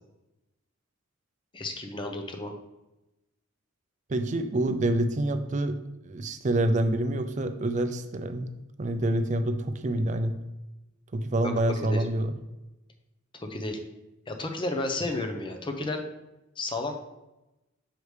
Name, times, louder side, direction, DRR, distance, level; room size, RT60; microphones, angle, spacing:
voice 1, 1.5-2.5 11.4-11.5 11.8-12.1 13.3-13.8 14.3-16.0 16.6-17.0, left 2 dB, 25° left, 4 dB, 0.6 m, -32 dB
voice 2, 4.1-8.5 8.8-10.3 11.1-12.4, right 1 dB, 35° right, 9 dB, 0.4 m, -27 dB
6.6 x 4.8 x 3.2 m, 0.97 s
head